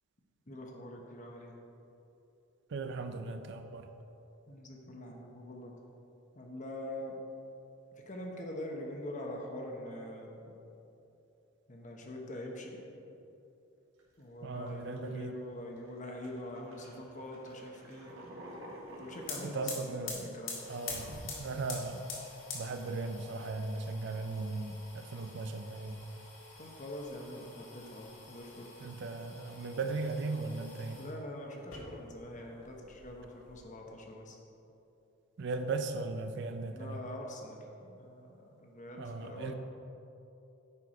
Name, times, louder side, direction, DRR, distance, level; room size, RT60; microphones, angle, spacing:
voice 1, 0.5-1.5 4.5-5.7 6.3-7.1 8.1-10.5 11.7-12.8 14.2-18.1 19.0-20.7 26.6-28.9 30.9-34.4 36.7-39.5, left 1 dB, 40° left, 0 dB, 1.1 m, -44 dB
voice 2, 2.7-3.9 14.4-15.3 19.4-20.3 20.6-22.0 22.5-26.0 28.8-31.0 35.4-37.0 39.0-39.5, right 3 dB, 60° right, 7 dB, 0.5 m, -37 dB
sound 1, 14.0-14.2 14.7-15.2 15.8-15.9 16.2-20.3, equal, 85° right, 1.7 m, -49 dB
sound 2, 18.9-19.0 19.2-31.1 31.6-32.4 32.6-33.6, left 4 dB, 70° left, 2.0 m, -47 dB
10.0 x 4.8 x 4.9 m, 2.9 s
head